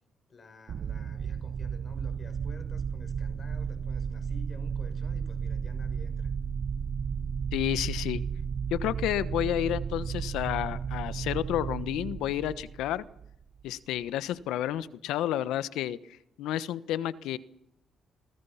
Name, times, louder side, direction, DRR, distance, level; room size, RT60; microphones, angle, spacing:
voice 1, 0.3-6.3, left 3 dB, 40° left, 9 dB, 6.4 m, -52 dB
sound 1, 0.7-13.7, right 6 dB, 55° right, 1.0 m, -34 dB
voice 2, 7.5-8.2 8.7-13.0 13.6-16.0 16.4-17.4, left 12 dB, 90° left, 15 dB, 1.2 m, -30 dB
28.5 x 22.5 x 5.8 m, 0.76 s
cardioid pair, 90°, 0 cm